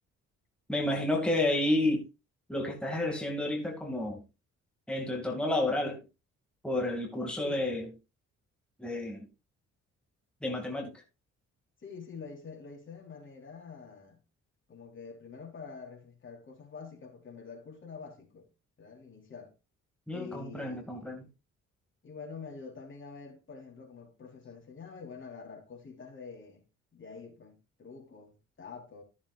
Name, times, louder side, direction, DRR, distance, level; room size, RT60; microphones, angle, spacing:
voice 1, 0.7-2.0 2.5-4.2 4.9-6.0 6.6-7.9 8.8-9.2 10.4-10.9 20.1-21.2, left 1 dB, 5° left, 2.3 m, -30 dB
voice 2, 11.8-14.2 14.7-18.5 18.8-19.5 20.1-21.2 22.0-26.6 26.9-29.0, left 5 dB, 40° left, 3.9 m, -47 dB
14.0 x 7.1 x 2.5 m
cardioid pair, 90°, 30 cm